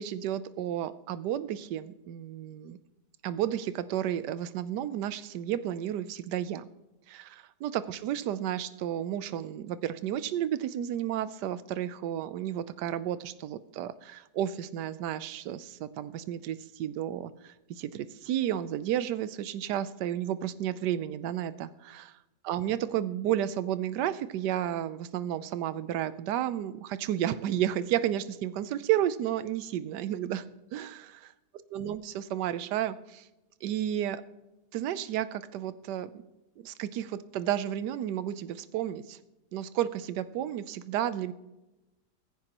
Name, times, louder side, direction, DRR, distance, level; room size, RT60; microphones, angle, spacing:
voice 1, 0.0-2.8 3.2-6.7 7.1-22.1 22.4-30.4 30.7-31.3 31.7-33.3 33.6-34.2 34.7-36.1 36.6-39.2 39.5-41.3, right 11 dB, 80° right, 14 dB, 1.3 m, -32 dB
16.0 x 15.0 x 3.0 m, 1.0 s
omnidirectional pair, 1.8 m